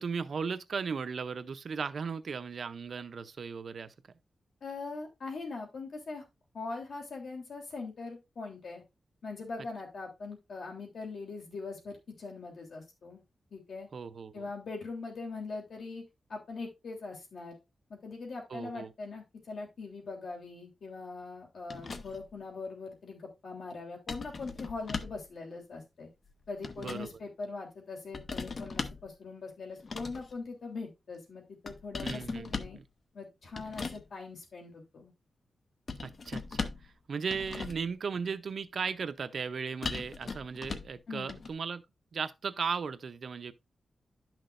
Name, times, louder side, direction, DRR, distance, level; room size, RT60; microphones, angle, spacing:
voice 1, 0.0-3.9 13.9-14.5 18.5-18.9 26.8-27.1 32.0-32.8 36.0-41.8 42.1-43.5, right 5 dB, 60° right, 0.6 m, -36 dB
voice 2, 4.6-6.2 6.5-8.8 9.2-13.2 13.5-13.9 14.3-16.0 16.3-17.5 17.9-26.1 26.5-32.8 33.1-35.1 41.1-41.4, left 3 dB, 70° left, 3.2 m, -41 dB
sound 1, 21.7-22.3 24.1-25.3 26.3-27.1 28.1-29.1 29.8-30.3 31.7-32.8 33.5-34.0 35.9-36.9 37.3-37.9 39.8-41.0 41.3-41.5, left 4 dB, 45° left, 0.7 m, -39 dB
11.0 x 6.0 x 2.5 m
wide cardioid pair, 130°, 0 cm